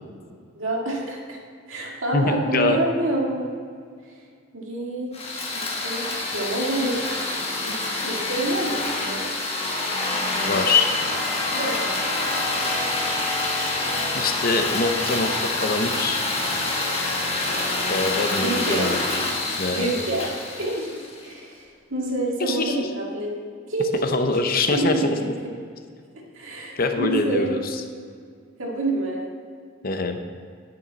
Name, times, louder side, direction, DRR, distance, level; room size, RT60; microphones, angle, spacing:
voice 1, 0.5-1.4 1.7-3.6 4.5-5.1 5.5-6.1 6.3-7.0 7.6-9.4 11.5-11.9 18.4-18.9 19.5-20.9 21.2-23.3 23.7-24.0 24.7-25.3 26.3-27.6 28.6-29.3, right 2 dB, 75° right, -2 dB, 2.0 m, -27 dB
voice 2, 2.1-2.8 10.4-10.9 14.2-16.2 17.9-19.0 19.6-19.9 22.4-22.9 24.0-25.1 26.8-27.8 29.8-30.2, left 3 dB, 45° left, 6 dB, 0.7 m, -24 dB
sound 1, 5.1-21.3, left 2 dB, 30° left, 1.3 m, -26 dB
9.2 x 9.1 x 4.0 m, 2.2 s
head